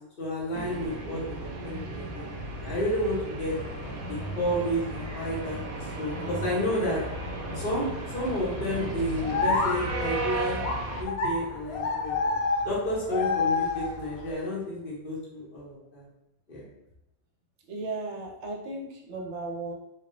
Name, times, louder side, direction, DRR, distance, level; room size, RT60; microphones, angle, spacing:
voice 1, 0.2-3.5 4.1-7.0 7.5-10.6 10.9-12.2 12.6-16.1 16.5-16.7, equal, 40° left, -6 dB, 1.2 m, -31 dB
sound 1, 0.5-11.0, right 2 dB, 90° right, 1.1 m, -35 dB
sound 2, 3.5-14.3, left 4 dB, 85° left, 1.0 m, -32 dB
voice 2, 17.7-19.7, right 3 dB, 65° right, 0 dB, 0.9 m, -35 dB
3.7 x 3.0 x 2.7 m, 0.88 s
omnidirectional pair, 1.5 m